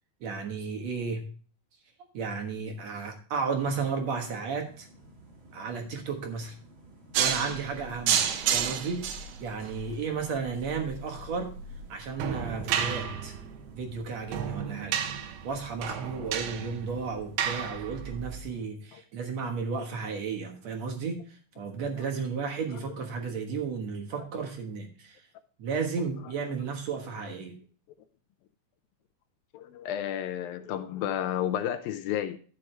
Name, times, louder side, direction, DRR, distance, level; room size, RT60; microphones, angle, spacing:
voice 1, 0.2-1.2 2.1-4.9 5.5-6.6 7.2-11.5 11.9-13.3 13.7-15.0 15.4-25.2 25.6-27.6, right 5 dB, 60° right, 1.9 m, -33 dB
sound 1, 4.6-18.7, right 1 dB, 35° right, 2.3 m, -54 dB
sound 2, 7.1-18.4, right 9 dB, 75° right, 2.8 m, -32 dB
voice 2, 29.5-32.4, left 10 dB, 80° left, 2.1 m, -32 dB
12.5 x 7.6 x 3.3 m
omnidirectional pair, 4.8 m